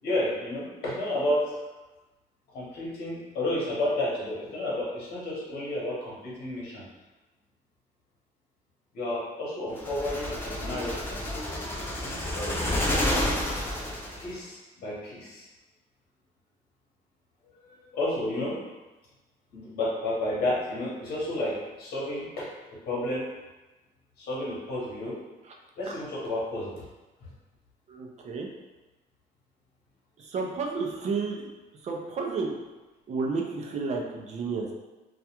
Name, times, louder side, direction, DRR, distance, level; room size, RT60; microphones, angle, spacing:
voice 1, 0.0-1.6 2.5-6.9 8.9-11.1 11.9-12.8 14.1-15.5 17.6-18.7 19.5-22.5 22.8-23.3 24.2-25.2 25.8-26.7, left 1 dB, 65° left, -6 dB, 0.9 m, -31 dB
sound 1, 9.8-14.3, left 1 dB, 15° left, 0.5 m, -30 dB
voice 2, 27.9-28.5 30.2-31.5 31.8-32.5 33.1-34.7, right 4 dB, 45° right, 1 dB, 0.5 m, -31 dB
2.3 x 2.2 x 2.8 m, 1.1 s
cardioid pair, 110°, 17 cm